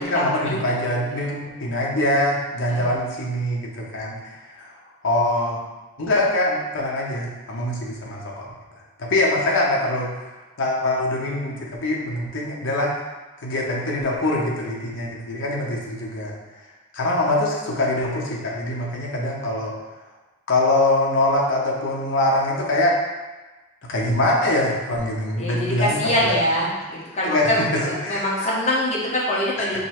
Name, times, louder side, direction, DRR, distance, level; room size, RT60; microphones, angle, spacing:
voice 1, 0.0-4.7 5.0-5.6 6.0-8.5 9.0-10.3 10.6-12.9 13.4-16.3 16.9-19.7 20.5-23.0 23.9-26.4 27.2-28.5, left 1 dB, 60° left, -3 dB, 0.9 m, -23 dB
voice 2, 25.4-29.8, left 1 dB, 30° left, -6 dB, 1.0 m, -24 dB
5.2 x 2.1 x 4.3 m, 1.1 s
head